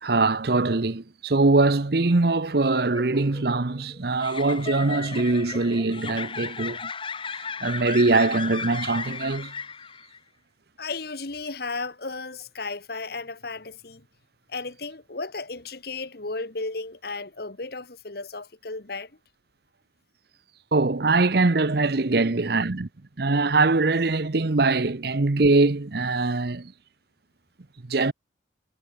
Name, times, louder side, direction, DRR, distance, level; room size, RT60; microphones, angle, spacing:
voice 1, 0.0-6.9 7.3-9.5 20.7-22.9 23.2-26.7 27.9-28.1, right 3 dB, 55° right, 0.9 m, -22 dB
sound 1, 2.6-10.2, left 5 dB, 25° left, 1.6 m, -35 dB
voice 2, 10.8-14.0 14.5-19.1, left 3 dB, 55° left, 1.5 m, -34 dB
head